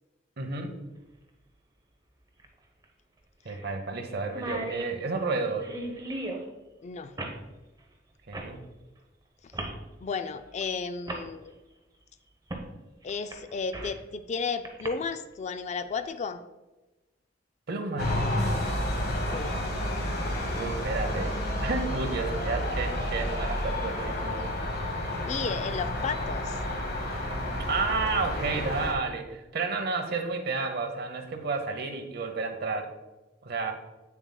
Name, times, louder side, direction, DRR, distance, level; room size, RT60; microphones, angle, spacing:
voice 1, 0.4-0.8 3.4-5.7 8.3-8.6 17.7-18.3 20.6-24.5 27.7-32.9 33.4-33.7, right 3 dB, 60° right, 6 dB, 0.8 m, -31 dB
sound 1, 0.5-0.6 2.4-2.5 2.8-2.9 3.5-3.7 4.0-4.1 4.2-6.4 7.2-7.4 8.3-8.5 9.5-9.8 10.6-10.7 11.1-11.2 12.5-12.7 13.1-14.0 14.6-14.9, right 2 dB, 20° right, 0.8 m, -36 dB
voice 2, 6.8-7.1 10.0-11.5 13.0-16.4 19.3-19.6 25.3-26.6, left 5 dB, 40° left, 10 dB, 0.3 m, -33 dB
sound 2, 18.0-28.9, left 1 dB, 60° left, 1.3 m, -30 dB
8.4 x 6.9 x 2.2 m, 1.1 s
head